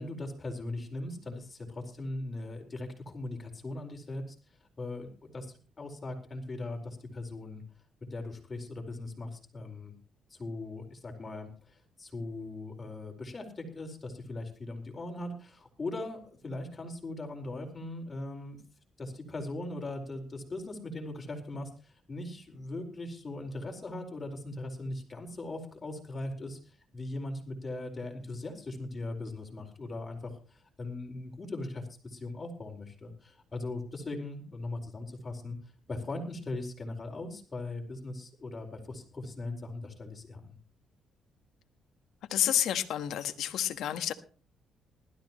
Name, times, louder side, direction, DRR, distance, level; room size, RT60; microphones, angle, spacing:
voice 1, 0.0-4.3 4.8-7.6 8.1-10.0 10.3-18.6 19.0-35.6 35.9-40.6, left 2 dB, 30° left, 4.6 m, -39 dB
voice 2, 42.3-44.1, left 11 dB, 80° left, 1.3 m, -29 dB
20.0 x 13.5 x 3.1 m
cardioid pair, 90°, 0 cm